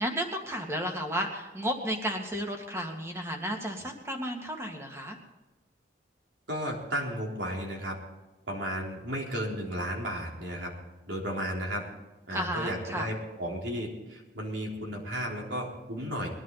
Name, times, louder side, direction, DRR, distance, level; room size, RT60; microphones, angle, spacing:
voice 1, 0.0-5.2 12.3-13.1, equal, 15° right, 2 dB, 2.0 m, -33 dB
voice 2, 6.5-8.0 8.5-10.7 11.1-11.8 12.3-16.3, equal, 80° right, -1 dB, 3.8 m, -34 dB
21.5 x 11.0 x 4.1 m, 1.1 s
head